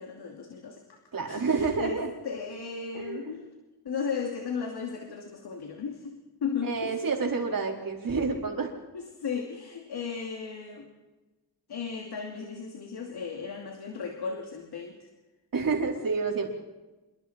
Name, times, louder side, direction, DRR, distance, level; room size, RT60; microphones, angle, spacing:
voice 1, 0.0-1.0 1.3-3.5 3.8-7.0 8.9-10.9 11.7-15.1, left 6 dB, 85° left, 1 dB, 2.7 m, -36 dB
voice 2, 1.1-2.1 2.9-3.3 6.6-8.7 15.5-16.5, right 4 dB, 60° right, 1 dB, 4.5 m, -29 dB
26.5 x 23.5 x 4.4 m, 1.1 s
wide cardioid pair, 105°, 38 cm